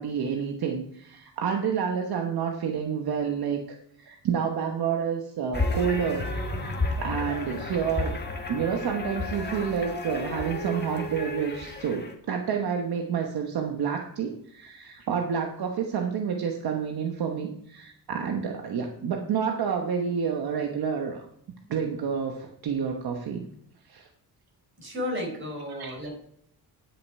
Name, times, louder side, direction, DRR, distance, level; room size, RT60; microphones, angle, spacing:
voice 1, 0.0-3.6 4.0-6.3 7.0-8.1 8.5-21.3 21.7-23.4 23.9-24.1 25.7-25.9, right 7 dB, 65° right, 3 dB, 1.1 m, -29 dB
sound 1, 5.5-12.1, left 2 dB, 25° left, 1.5 m, -32 dB
voice 2, 24.8-26.1, left 1 dB, 30° right, 1 dB, 4.2 m, -33 dB
11.0 x 6.7 x 4.7 m, 0.71 s
cardioid pair, 125°, 40 cm